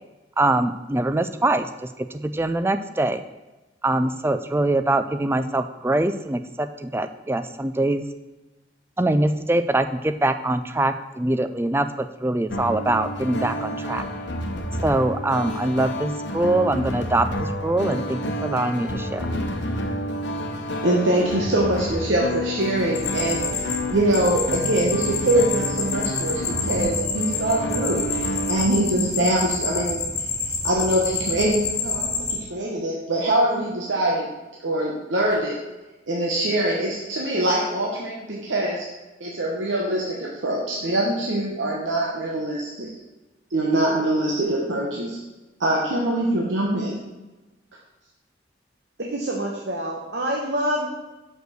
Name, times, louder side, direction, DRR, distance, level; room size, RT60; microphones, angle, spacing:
voice 1, 0.4-3.2 3.8-8.1 9.0-14.0 14.8-19.3, right 2 dB, 15° right, 10 dB, 0.3 m, -23 dB
sound 1, 12.5-28.7, left 1 dB, 70° left, 1.0 m, -29 dB
voice 2, 20.8-23.4 23.9-28.1 28.5-30.0 30.5-34.3 34.6-35.6 36.1-38.8 39.2-42.9 43.5-45.2 45.6-47.0, right 1 dB, 80° right, -3 dB, 1.2 m, -23 dB
sound 2, 23.0-32.3, left 5 dB, 35° left, 2.1 m, -28 dB
voice 3, 49.0-50.9, right 1 dB, 60° right, -2 dB, 1.1 m, -26 dB
6.3 x 5.2 x 6.6 m, 1.1 s
head